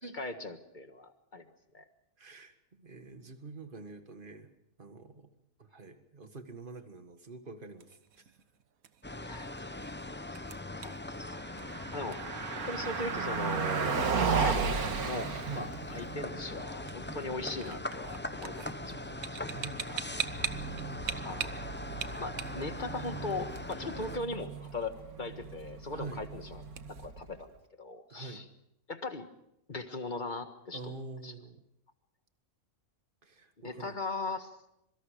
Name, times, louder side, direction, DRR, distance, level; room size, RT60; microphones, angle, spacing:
voice 1, 0.0-1.5 1.7-1.8 9.2-9.8 10.0-10.3 10.7-11.0 11.9-12.2 12.7-14.1 14.4-14.8 15.0-15.3 15.5-19.4 19.9-20.0 21.2-21.5 22.2-26.6 26.9-27.5 27.8-28.5 28.9-29.3 29.7-30.9 31.2-31.3 33.6-34.6, left 3 dB, 35° left, 7 dB, 1.8 m, -39 dB
voice 2, 2.2-4.5 4.8-5.3 5.6-8.3 15.4-15.7 19.5-20.2 25.9-26.2 28.1-28.4 30.7-31.6 33.2-34.0, right 3 dB, 35° right, 8 dB, 1.9 m, -46 dB
sound 1, 7.5-27.1, right 8 dB, 70° right, 1.4 m, -45 dB
sound 2, 9.0-24.2, left 2 dB, 15° left, 0.4 m, -41 dB
Car passing by, 11.3-27.4, right 5 dB, 85° right, 2.1 m, -36 dB
26.0 x 24.0 x 5.1 m, 0.78 s
omnidirectional pair, 1.5 m